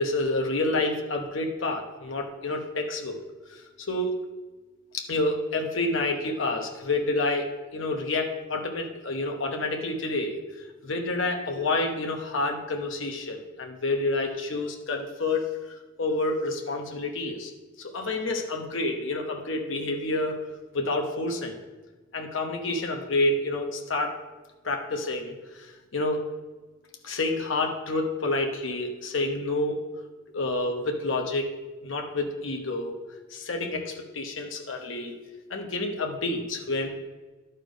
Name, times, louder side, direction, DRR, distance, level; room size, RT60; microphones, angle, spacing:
voice 1, 0.0-3.2 3.5-4.1 4.9-10.4 10.8-17.5 17.8-20.3 20.7-21.6 22.1-24.1 24.6-26.2 27.0-29.8 30.3-31.5 31.8-32.9 33.3-35.1 35.5-36.9, left 2 dB, 80° left, 2 dB, 1.0 m, -29 dB
12.0 x 4.5 x 5.1 m, 1.2 s
head